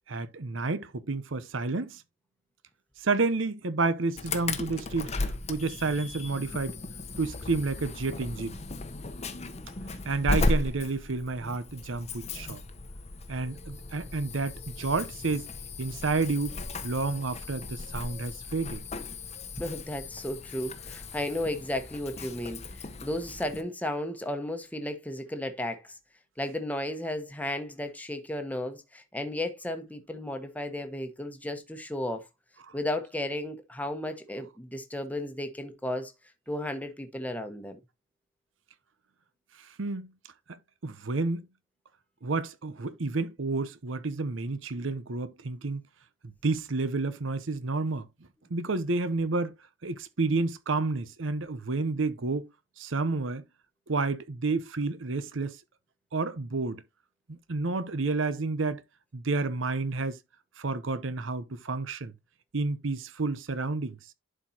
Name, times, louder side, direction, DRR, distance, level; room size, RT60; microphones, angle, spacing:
voice 1, 0.1-2.0 3.0-5.1 5.5-6.8 7.2-8.6 10.0-12.6 13.3-15.5 15.8-18.8 39.6-40.1 40.5-41.5 42.2-45.8 46.2-48.1 48.5-49.5 49.8-52.5 52.8-53.4 53.9-55.6 56.1-56.8 57.3-58.8 59.1-60.2 60.6-62.1 62.5-64.0, right 3 dB, 75° right, 0.8 m, -30 dB
Insect / Alarm, 4.2-23.6, left 2 dB, 35° left, 0.9 m, -36 dB
voice 2, 19.6-22.6 23.0-25.9 26.4-32.2 32.7-36.1 36.5-37.8, left 1 dB, 10° left, 1.1 m, -34 dB
11.0 x 4.5 x 2.8 m
head